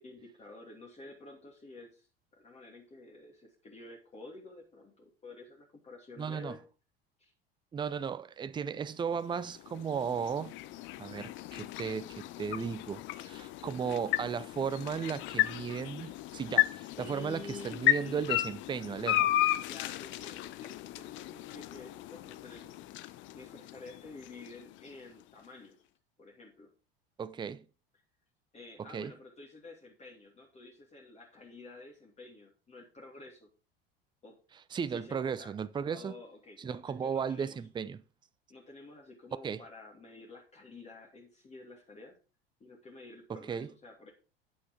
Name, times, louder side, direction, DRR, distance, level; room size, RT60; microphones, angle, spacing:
voice 1, 0.0-2.1 2.3-6.6 7.2-7.3 17.0-18.3 19.5-22.7 23.0-25.7 26.2-26.7 28.5-33.5 34.2-34.4 34.9-35.5 35.9-37.6 38.5-42.2 42.6-44.1, left 2 dB, 20° left, 2.6 m, -50 dB
voice 2, 6.2-6.6 7.7-10.5 11.0-19.3 27.2-27.7 28.8-29.1 34.7-36.2 36.6-38.0 39.4-39.6 43.3-43.7, right 6 dB, 15° right, 0.6 m, -35 dB
sound 1, 9.0-25.2, left 15 dB, 40° left, 0.7 m, -34 dB
9.6 x 8.4 x 3.7 m
figure-of-eight pair, 70°, 29 cm